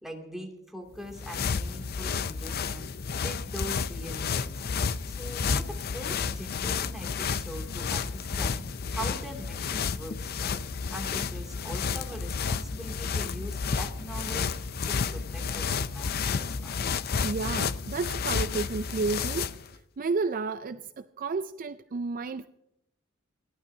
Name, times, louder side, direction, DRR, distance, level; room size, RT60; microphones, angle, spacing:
voice 1, 0.0-2.9 3.2-4.5 5.1-16.8, equal, ahead, 0 dB, 2.6 m, -42 dB
sound 1, 0.9-19.7, left 5 dB, 50° left, 0.5 m, -31 dB
voice 2, 17.2-19.5 20.0-22.5, right 4 dB, 40° right, 11 dB, 0.4 m, -31 dB
29.0 x 12.0 x 2.8 m, 0.86 s
head